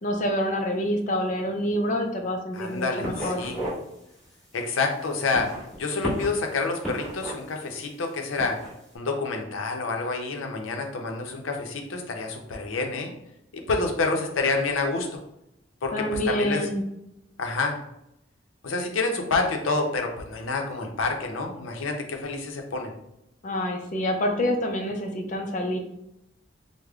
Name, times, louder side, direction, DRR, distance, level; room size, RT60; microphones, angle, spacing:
voice 1, 0.0-3.4 15.9-16.8 23.4-25.8, equal, 40° left, 3 dB, 0.4 m, -27 dB
voice 2, 2.5-3.6 4.5-8.6 8.9-13.1 13.5-15.1 15.8-16.6 17.4-17.8 18.6-22.9, left 3 dB, 90° left, 3 dB, 0.6 m, -28 dB
sound 1, 2.5-2.8 3.0-3.8 4.2-4.4 5.2-6.4 6.8-7.6 8.3-8.7, right 1 dB, 5° left, 1.3 m, -33 dB
4.8 x 2.1 x 2.3 m, 0.82 s
head